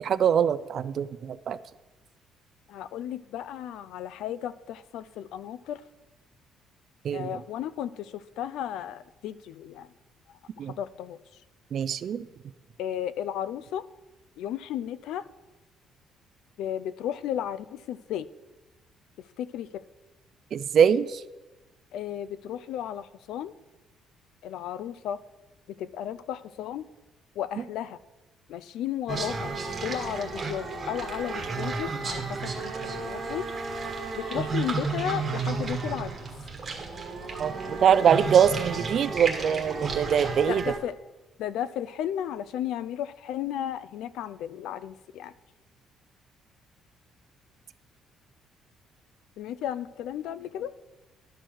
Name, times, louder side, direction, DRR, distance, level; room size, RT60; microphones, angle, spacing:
voice 1, 0.0-1.6 7.0-7.3 10.6-10.7 11.7-12.2 20.5-21.2 37.4-40.6, right 8 dB, 45° right, 13 dB, 0.4 m, -23 dB
voice 2, 2.7-5.8 7.1-9.9 10.3-11.2 12.8-13.8 14.4-15.2 16.6-18.3 19.2-19.8 21.9-23.5 24.4-25.2 25.7-26.9 27.4-28.0 28.5-29.5 29.8-33.5 34.2-36.1 40.4-40.9 41.4-45.3 49.4-50.7, left 10 dB, 75° left, 15 dB, 0.4 m, -34 dB
sound 1, 29.1-40.8, right 4 dB, 25° right, 1.5 m, -32 dB
12.0 x 4.5 x 6.3 m, 1.1 s
cardioid pair, 155°, 0 cm